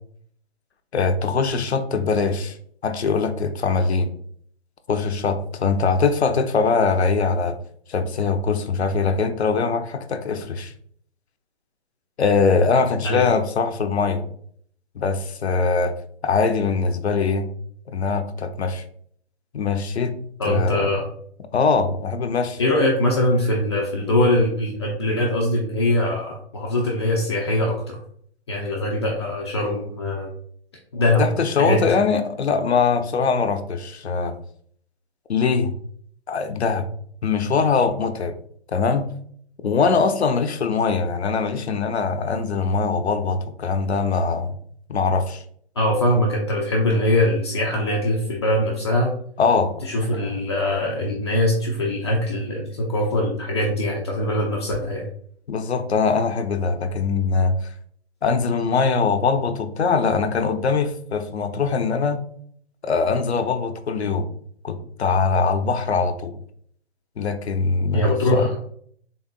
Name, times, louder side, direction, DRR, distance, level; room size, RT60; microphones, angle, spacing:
voice 1, 0.9-2.6 2.8-4.1 4.9-7.6 7.9-10.7 12.2-14.2 15.0-15.9 16.2-17.5 17.9-18.8 19.5-20.1 20.4-20.9 21.5-22.6 31.2-34.3 35.3-35.7 36.3-36.8 37.2-38.3 38.7-39.1 39.6-44.5 44.9-45.4 49.4-49.8 55.5-57.5 58.2-62.2 62.8-64.3 64.6-66.4 67.2-68.5, left 4 dB, 75° left, 8 dB, 0.6 m, -22 dB
voice 2, 20.4-21.0 22.6-28.0 28.5-30.3 30.9-31.2 31.6-32.0 45.8-49.1 49.8-55.0 67.9-68.5, left 1 dB, 25° left, -3 dB, 0.4 m, -22 dB
3.9 x 3.5 x 2.2 m, 0.62 s
figure-of-eight pair, 135°, 33 cm